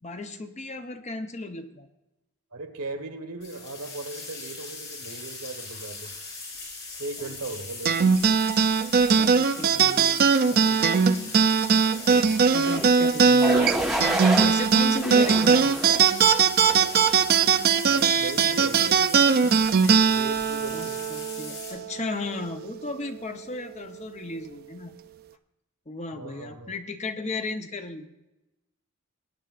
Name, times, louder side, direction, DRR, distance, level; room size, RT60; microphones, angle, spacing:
voice 1, 0.0-1.9 7.2-7.3 9.2-10.2 10.5-11.6 12.1-13.7 14.3-15.8 20.7-24.9 25.9-28.1, left 2 dB, 30° left, 6 dB, 0.8 m, -35 dB
voice 2, 2.5-6.1 7.0-8.0 17.9-19.6 20.1-21.0 26.1-26.7, right 3 dB, 90° right, 6 dB, 1.3 m, -37 dB
sound 1, 3.4-21.7, left 4 dB, 50° left, 4.6 m, -40 dB
sound 2, 7.8-22.6, right 6 dB, 45° right, 0.4 m, -21 dB
sound 3, 12.5-12.9 13.4-14.5 15.0-16.0 16.6-17.0, right 1 dB, ahead, 1.3 m, -29 dB
20.5 x 9.2 x 2.5 m, 0.97 s
head